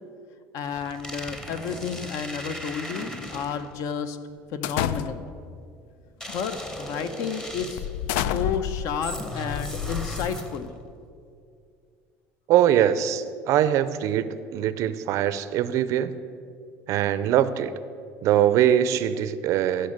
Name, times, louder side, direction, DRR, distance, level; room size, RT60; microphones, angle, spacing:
voice 1, 0.5-4.2 4.5-5.3 6.3-10.7, left 6 dB, 60° left, 10 dB, 0.8 m, -31 dB
sound 1, 0.6-3.8 6.2-8.0 9.0-10.8, left 1 dB, 10° left, 0.9 m, -37 dB
sound 2, 4.6-5.5 6.3-6.5 7.0-7.1 7.8-10.7, left 10 dB, 80° left, 0.4 m, -30 dB
voice 2, 12.5-16.1 16.9-17.7 18.2-19.9, right 11 dB, 55° right, 14 dB, 0.5 m, -22 dB
14.5 x 5.5 x 6.5 m, 2.4 s
cardioid pair, 140°, 6 cm